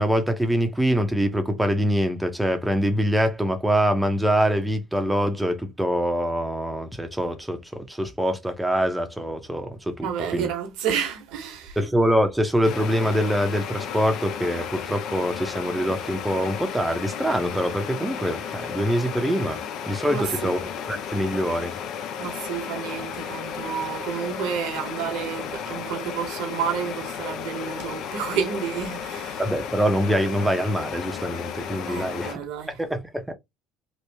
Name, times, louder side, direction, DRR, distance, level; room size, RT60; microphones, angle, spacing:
voice 1, 0.0-10.5 11.8-19.6 19.9-20.6 20.9-21.8 29.4-32.4 32.8-33.3, equal, 5° right, 0.7 m, -24 dB
voice 2, 10.0-11.8 20.1-20.6 22.2-29.4 31.9-32.8, right 8 dB, 65° right, 1.0 m, -30 dB
sound 1, 12.6-32.4, left 8 dB, 55° left, 0.5 m, -34 dB
3.0 x 2.4 x 3.3 m
hypercardioid pair, 65°, 0 cm